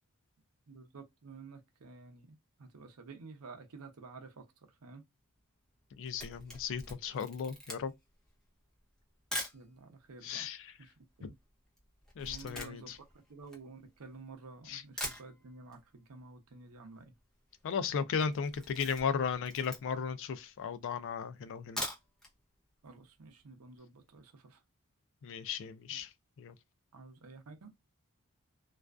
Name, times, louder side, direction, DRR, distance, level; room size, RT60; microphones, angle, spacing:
voice 1, 0.7-4.5 4.8-5.0 9.5-10.5 10.8-11.4 12.2-13.0 13.3-17.1 22.8-24.6 25.9-26.0 26.9-27.7, right 4 dB, 75° right, 0.6 m, -51 dB
Camera, 5.8-9.6 10.3-10.4 10.6-14.3 14.7-14.8 15.0-15.8 16.1-16.2 16.5-16.6 16.8-17.2 17.5-17.8 18.1-20.1 20.6-20.7 21.5-22.3 22.7-22.8 23.1-23.2, left 1 dB, ahead, 0.7 m, -43 dB
voice 2, 6.0-7.9 10.2-10.6 12.2-13.0 14.7-14.8 17.6-21.8 25.2-26.1 26.4-26.5, left 6 dB, 60° left, 0.3 m, -35 dB
2.4 x 2.2 x 2.3 m
head